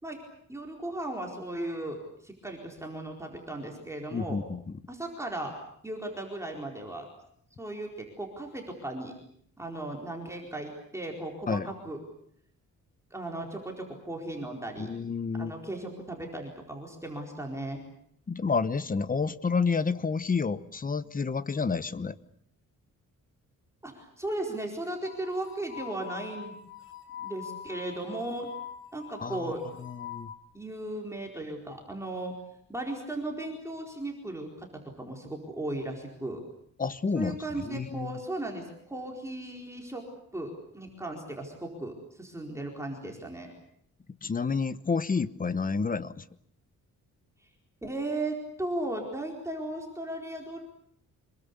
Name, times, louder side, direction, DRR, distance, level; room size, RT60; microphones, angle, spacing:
voice 1, 0.5-4.4 4.9-5.5 5.8-7.1 7.6-9.1 9.6-12.0 13.1-14.9 15.4-17.8 23.8-26.6 27.2-28.5 28.9-29.6 30.5-32.4 32.7-36.4 37.1-40.0 40.3-43.5 47.8-50.6, right 1 dB, 10° right, 0 dB, 4.4 m, -36 dB
voice 2, 4.1-4.8 11.5-11.7 14.8-15.5 18.3-22.2 29.2-29.5 29.8-30.3 36.8-38.2 44.2-46.2, left 5 dB, 25° left, 14 dB, 1.1 m, -30 dB
sound 1, 25.0-30.4, left 9 dB, 40° left, 4.0 m, -44 dB
26.5 x 22.5 x 8.3 m, 0.68 s
wide cardioid pair, 140°, 31 cm